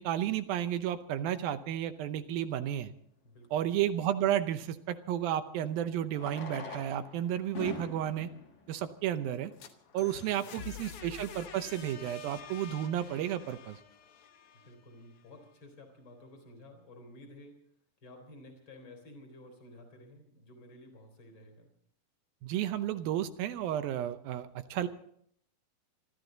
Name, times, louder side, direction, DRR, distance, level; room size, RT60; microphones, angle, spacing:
voice 1, 0.0-2.9 3.5-8.3 8.7-9.5 9.9-13.8 22.4-24.9, right 11 dB, 75° right, 10 dB, 2.5 m, -32 dB
Fireworks, 2.5-2.6 4.9-5.0 6.1-9.8 10.6-10.7 10.9-11.0 11.2-11.3 11.8-12.0, left 4 dB, 50° left, 4.3 m, -45 dB
voice 2, 3.2-3.6 10.0-10.9 14.6-17.6 18.0-21.7, left 1 dB, 30° left, 4 dB, 4.4 m, -53 dB
sound 1, 9.3-15.2, left 8 dB, 80° left, 1.2 m, -48 dB
26.5 x 13.0 x 4.0 m, 0.66 s
omnidirectional pair, 4.4 m